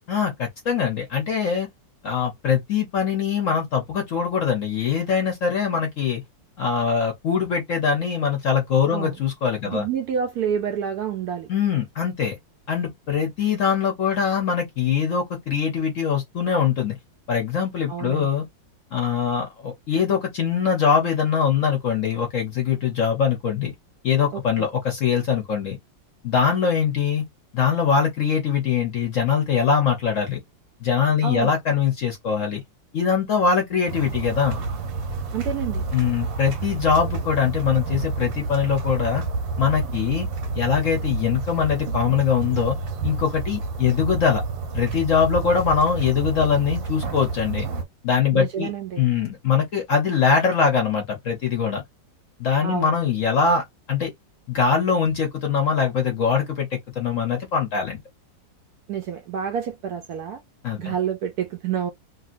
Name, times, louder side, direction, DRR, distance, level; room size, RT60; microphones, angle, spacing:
voice 1, 0.1-1.7 2.0-6.2 6.6-9.8 11.5-12.4 12.7-17.0 17.3-18.4 18.9-23.7 24.0-25.8 26.2-27.3 27.5-30.4 30.8-32.6 32.9-34.6 35.9-39.2 39.6-40.3 40.5-42.8 43.0-44.4 44.7-47.7 48.0-48.7 49.0-51.8 52.4-54.1 54.5-58.0 60.6-60.9, left 6 dB, 60° left, 0.8 m, -22 dB
voice 2, 9.6-11.5 17.9-18.3 24.3-24.7 31.2-31.5 35.3-35.8 48.3-49.0 52.6-53.0 58.9-60.4 60.8-61.9, right 8 dB, 70° right, 0.9 m, -28 dB
sound 1, 33.9-47.8, right 4 dB, 90° right, 1.6 m, -29 dB
2.9 x 2.7 x 2.5 m
omnidirectional pair, 2.0 m